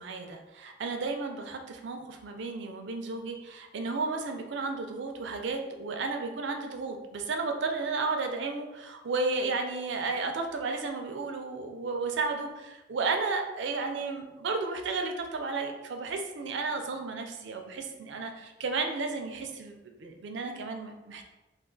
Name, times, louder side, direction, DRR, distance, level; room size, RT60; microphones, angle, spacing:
voice 1, 0.0-21.2, right 3 dB, 65° right, 4 dB, 0.4 m, -33 dB
2.4 x 2.3 x 3.7 m, 1.1 s
head